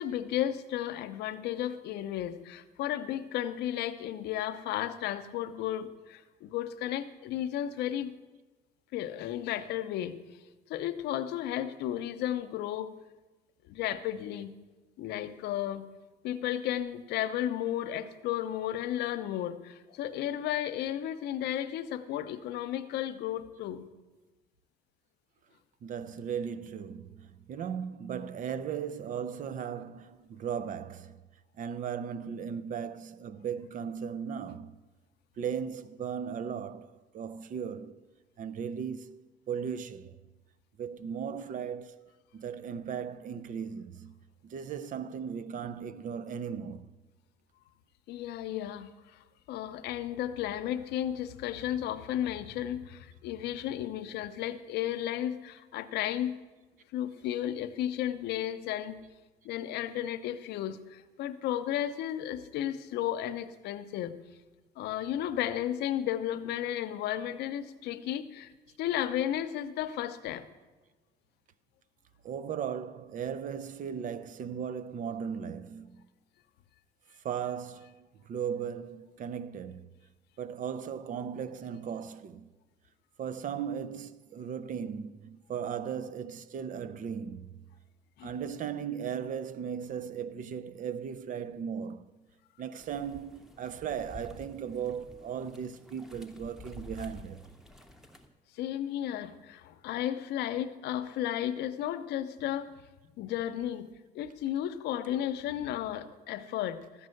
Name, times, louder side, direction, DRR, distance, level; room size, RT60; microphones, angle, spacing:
voice 1, 0.0-8.1 8.9-10.2 10.7-12.9 13.7-14.5 15.0-15.9 16.2-23.9 48.1-49.2 49.5-56.4 56.9-59.0 59.4-64.2 64.8-68.5 68.8-70.5 88.2-88.3 98.5-102.7 103.2-107.1, left 11 dB, 80° left, 0.7 m, -33 dB
voice 2, 25.8-31.2 31.6-34.7 35.4-38.0 38.4-40.2 40.8-44.1 44.4-46.9 72.2-76.0 77.2-79.9 80.4-82.5 83.2-87.6 88.2-92.2 92.6-97.4, right 7 dB, 50° right, 0.6 m, -37 dB
sound 1, 92.8-98.3, left 2 dB, ahead, 0.9 m, -50 dB
13.0 x 5.4 x 7.7 m
cardioid pair, 110°, 17 cm